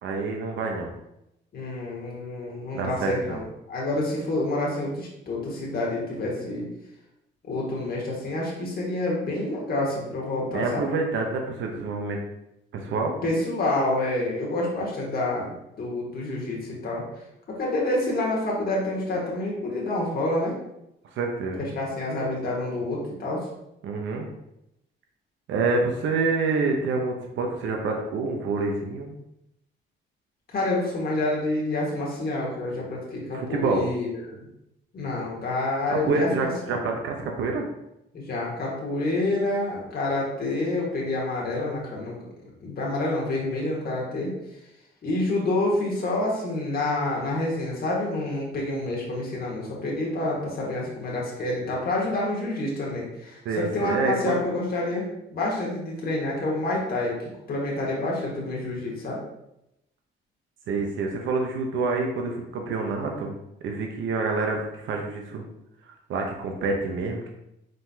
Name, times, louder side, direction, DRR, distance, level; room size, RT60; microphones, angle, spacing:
voice 1, 0.0-0.9 2.7-3.4 10.4-12.2 12.7-13.1 21.1-21.7 23.8-24.3 25.5-29.1 33.3-33.8 36.0-37.7 53.4-54.4 60.7-63.3 63.6-65.4 65.8-67.3, right 3 dB, 75° right, 2 dB, 0.8 m, -27 dB
voice 2, 1.5-6.7 7.5-10.8 13.2-17.0 17.5-20.5 21.6-23.4 30.5-34.5 34.9-36.8 38.1-42.1 42.6-44.3 45.0-57.2 57.5-59.2, left 2 dB, 50° left, -4 dB, 1.6 m, -28 dB
5.1 x 3.8 x 2.7 m, 0.84 s
cardioid pair, 90°, 20 cm